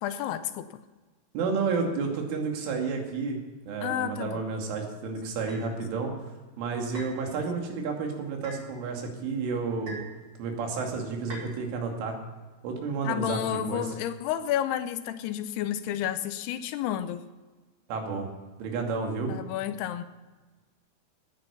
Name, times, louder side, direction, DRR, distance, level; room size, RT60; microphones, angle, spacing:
voice 1, 0.0-0.8 3.8-4.4 13.0-17.2 19.3-20.0, left 11 dB, 85° left, 11 dB, 2.3 m, -31 dB
voice 2, 1.3-3.4 3.7-6.1 6.6-10.0 10.4-12.2 12.6-13.9 17.9-18.3 18.6-19.3, right 4 dB, 90° right, 1 dB, 4.9 m, -31 dB
sound 1, 5.5-5.7 6.9-7.2 8.4-8.6 9.9-10.2 11.3-11.5, right 2 dB, 40° right, 5.4 m, -41 dB
18.0 x 10.0 x 7.0 m, 1.3 s
omnidirectional pair, 5.4 m